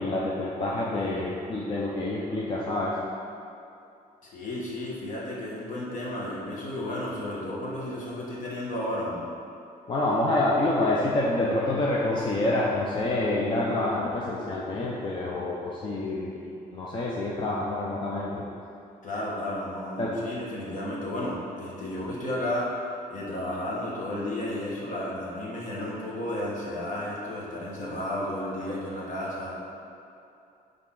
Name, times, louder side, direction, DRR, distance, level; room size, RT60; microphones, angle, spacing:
voice 1, 0.0-3.0 9.9-16.4 16.7-18.4 20.0-20.1, left 2 dB, 30° left, -5 dB, 0.6 m, -27 dB
voice 2, 4.2-9.2 19.0-22.8 23.1-29.5, left 1 dB, 55° left, -5 dB, 1.5 m, -33 dB
10.0 x 3.7 x 3.8 m, 2.6 s
cardioid pair, 170°, 15 cm